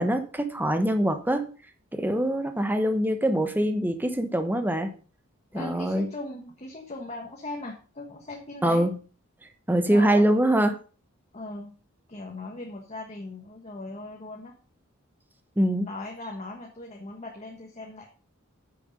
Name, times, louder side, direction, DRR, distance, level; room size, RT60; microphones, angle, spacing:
voice 1, 0.0-1.4 1.9-4.9 5.5-6.1 8.6-8.9 9.7-10.8 15.6-15.9, right 1 dB, 10° right, 7 dB, 1.0 m, -23 dB
voice 2, 5.5-8.9 9.9-10.2 11.3-11.7 12.1-14.6 15.8-18.1, left 2 dB, 30° left, 0 dB, 1.5 m, -38 dB
9.5 x 6.6 x 5.2 m, 0.38 s
head